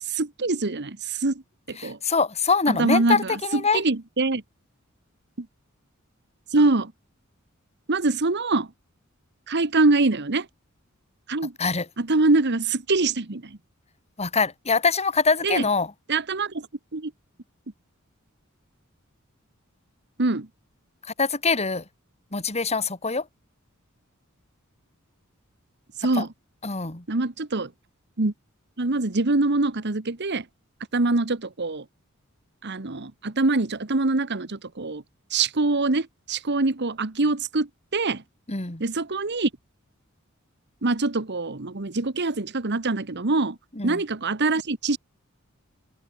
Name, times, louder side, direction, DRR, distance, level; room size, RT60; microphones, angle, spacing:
voice 1, 0.0-1.4 1.7-2.0 2.7-4.4 5.4-5.5 6.5-6.9 7.9-8.7 9.5-10.5 11.3-11.5 12.0-13.6 15.4-15.7 16.1-16.7 16.9-17.1 20.2-20.5 26.0-26.3 27.1-27.7 28.2-28.3 28.8-30.4 30.9-31.8 32.6-35.0 35.3-38.2 38.8-39.5 40.8-43.6 43.8-45.0, right 3 dB, 55° right, 1.4 m, -24 dB
voice 2, 1.8-3.8 11.6-11.9 14.2-15.9 21.2-21.8 22.3-23.3 26.2-26.3 26.6-27.0 38.5-38.8 43.8-44.0, left 4 dB, 30° left, 2.8 m, -24 dB
head